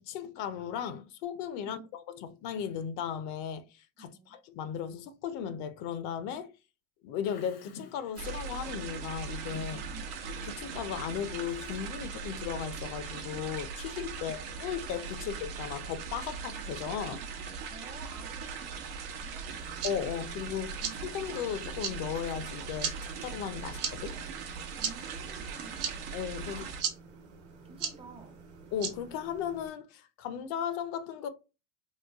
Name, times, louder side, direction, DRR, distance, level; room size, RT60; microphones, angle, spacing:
voice 1, 0.0-1.8 2.2-6.5 7.0-9.8 10.4-17.2 19.8-24.2 26.1-26.7 28.7-31.3, left 8 dB, 65° left, 0.6 m, -36 dB
voice 2, 4.0-4.4 9.9-10.1 14.2-14.4 17.7-19.7 20.8-21.0 24.8-26.0 26.5-26.7 27.6-28.4, right 4 dB, 20° right, 0.6 m, -51 dB
Bird vocalization bird call bird song, 7.2-14.6, left 4 dB, 85° left, 1.0 m, -54 dB
sound 1, 8.2-26.8, right 5 dB, 85° right, 0.8 m, -40 dB
sound 2, 19.5-29.7, right 7 dB, 50° right, 0.9 m, -40 dB
3.1 x 2.2 x 3.4 m
supercardioid pair, 115°, 29 cm